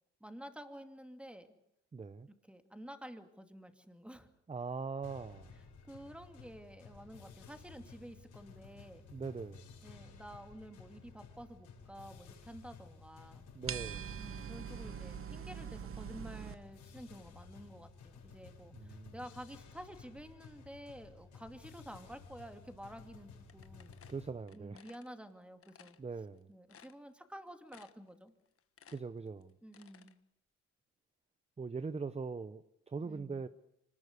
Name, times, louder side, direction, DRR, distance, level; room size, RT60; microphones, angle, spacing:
voice 1, 0.2-1.5 2.3-4.3 5.8-9.1 9.8-13.5 14.2-24.0 24.5-26.0 26.5-28.3 29.6-30.2 33.0-33.4, equal, 5° right, 7 dB, 2.6 m, -51 dB
voice 2, 1.9-2.3 4.5-5.5 9.1-9.7 13.5-14.2 18.7-19.1 24.1-24.9 26.0-26.5 28.9-29.5 31.6-33.5, right 4 dB, 20° right, 13 dB, 0.9 m, -41 dB
sound 1, 5.0-24.3, left 5 dB, 80° left, 7.3 m, -55 dB
sound 2, 13.7-16.5, right 8 dB, 45° right, 1.0 m, -43 dB
sound 3, 23.5-25.1 25.6-26.0 26.4-26.5 26.7-27.3 27.7-28.1 28.4-30.1, left 8 dB, 50° left, 1.4 m, -59 dB
25.0 x 20.0 x 8.2 m, 0.76 s
cardioid pair, 90°, 30 cm